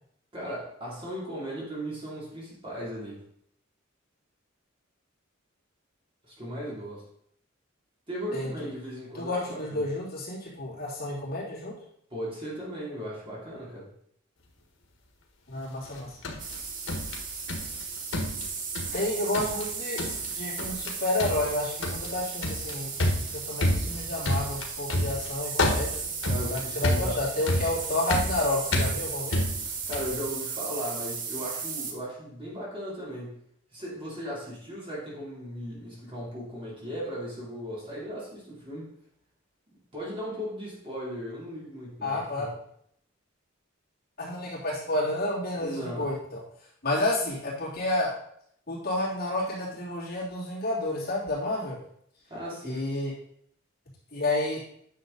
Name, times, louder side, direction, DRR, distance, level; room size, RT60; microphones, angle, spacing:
voice 1, 0.3-3.2 6.2-7.0 8.1-9.9 12.1-13.9 18.9-19.0 26.3-27.2 29.9-33.4 33.7-38.9 39.9-42.5 45.6-46.1 52.3-52.9, equal, 25° right, -6 dB, 3.2 m, -37 dB
voice 2, 8.3-8.7 9.1-11.7 15.5-16.4 18.9-22.9 23.3-26.0 26.5-29.5 42.0-42.5 44.2-46.4 46.8-48.1 48.7-51.8 52.6-53.1 54.1-54.6, left 1 dB, 50° left, -6 dB, 3.1 m, -30 dB
sound 1, 15.9-17.8 18.1-19.1 19.3-19.7 20.0-20.3 20.6-20.9 21.2-30.2, left 1 dB, 80° left, 1.6 m, -29 dB
sound 2, 16.4-31.9, right 5 dB, 40° right, 1.2 m, -36 dB
9.5 x 6.4 x 4.0 m, 0.69 s
head